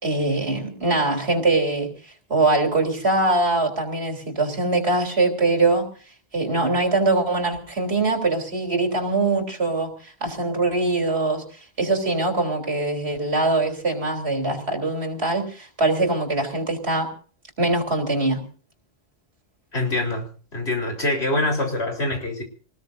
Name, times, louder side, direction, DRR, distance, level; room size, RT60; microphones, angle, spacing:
voice 1, 0.0-1.9 2.3-5.9 6.3-11.4 11.8-17.1 17.6-18.4, right 2 dB, 75° right, 2 dB, 3.9 m, -22 dB
voice 2, 19.7-20.3 20.5-22.4, left 2 dB, 85° left, 2 dB, 4.5 m, -24 dB
26.0 x 20.0 x 2.7 m, 0.41 s
omnidirectional pair, 1.1 m